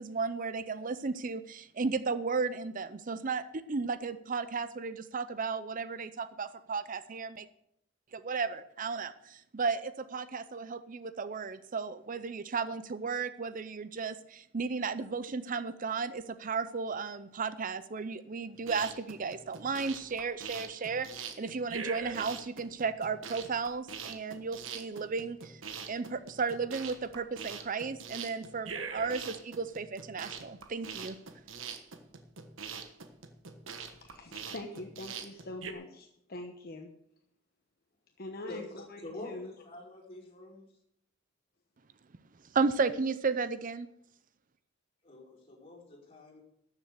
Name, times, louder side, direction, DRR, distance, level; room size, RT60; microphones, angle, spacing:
voice 1, 0.0-7.5 8.1-25.6 25.9-31.2 42.5-43.9, right 4 dB, 45° right, 13 dB, 0.6 m, -34 dB
sound 1, 18.5-35.7, right 6 dB, 80° right, 1.4 m, -43 dB
voice 2, 34.0-36.9 38.2-39.5, left 2 dB, 50° left, 4 dB, 1.1 m, -43 dB
voice 3, 39.0-40.6 45.0-46.4, left 2 dB, 30° left, -4 dB, 5.0 m, -46 dB
13.0 x 7.2 x 8.0 m, 0.76 s
head